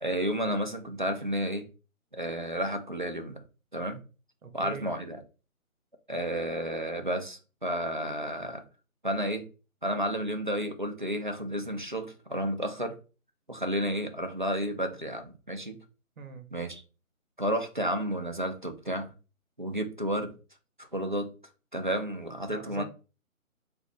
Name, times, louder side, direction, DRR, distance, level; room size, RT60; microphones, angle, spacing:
voice 1, 0.0-1.7 2.1-3.4 3.7-4.0 4.5-5.2 6.1-8.6 9.0-9.4 9.8-13.0 13.5-15.8 16.5-16.8 17.4-19.1 19.6-20.3 20.9-21.3 21.7-22.8, equal, 35° right, 0.4 m, -31 dB
voice 2, 4.4-4.9 16.2-16.5 22.5-22.8, right 4 dB, 70° right, 1.0 m, -42 dB
3.5 x 2.5 x 2.7 m
figure-of-eight pair, 160°, 42 cm